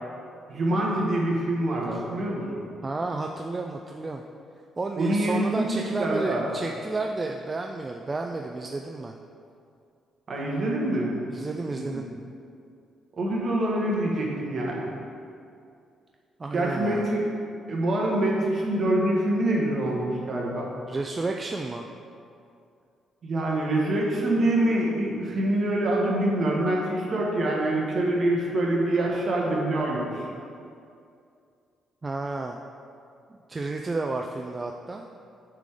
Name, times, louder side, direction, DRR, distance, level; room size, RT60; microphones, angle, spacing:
voice 1, 0.5-2.6 4.9-6.5 10.3-11.1 11.7-12.0 13.2-14.9 16.5-17.2 17.7-20.7 23.2-30.3, right 1 dB, 50° right, -3 dB, 1.5 m, -25 dB
voice 2, 2.8-4.2 4.8-9.1 11.3-12.1 16.4-17.1 20.9-21.9 32.0-32.6 33.5-35.0, right 3 dB, 25° right, 3 dB, 0.4 m, -31 dB
7.5 x 3.7 x 4.9 m, 2.5 s
cardioid pair, 90°, 0 cm